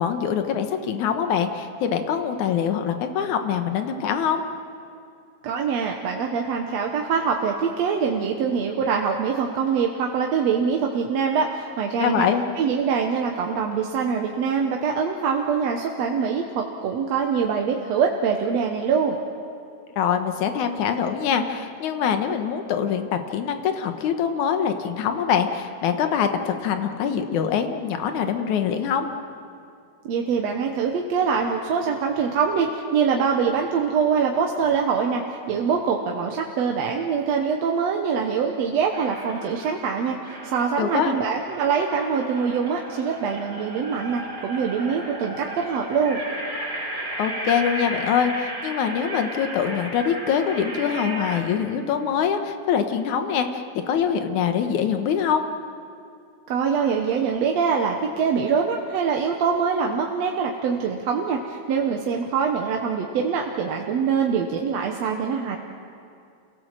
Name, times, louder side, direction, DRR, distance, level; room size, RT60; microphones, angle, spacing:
voice 1, 0.0-4.4 12.0-12.4 20.0-29.1 40.8-41.2 47.2-55.4, left 7 dB, 80° left, 7 dB, 2.7 m, -24 dB
voice 2, 5.4-12.3 12.6-19.2 30.1-46.2 56.5-65.6, right 6 dB, 70° right, 1 dB, 2.2 m, -24 dB
sound 1, 38.9-39.8 40.2-51.4, right 1 dB, 30° right, 4.4 m, -34 dB
29.0 x 17.5 x 7.6 m, 2.4 s
omnidirectional pair, 3.4 m